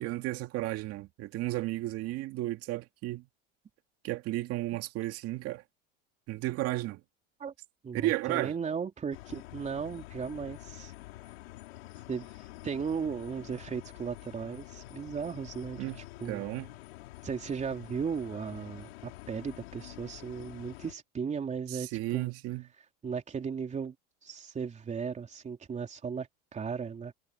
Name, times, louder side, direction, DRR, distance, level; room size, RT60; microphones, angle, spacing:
voice 1, 0.0-3.3 4.0-5.6 6.3-7.0 7.9-8.5 15.8-16.0 16.3-16.7 21.7-22.7, right 17 dB, 55° right, 2.2 m, -33 dB
voice 2, 7.8-10.9 12.1-12.3 12.6-16.4 17.2-22.3 23.0-24.0 24.2-27.1, right 6 dB, 25° right, 3.5 m, -36 dB
sound 1, 9.1-20.9, left 18 dB, 90° left, 4.6 m, -48 dB
supercardioid pair, 125°, 30 cm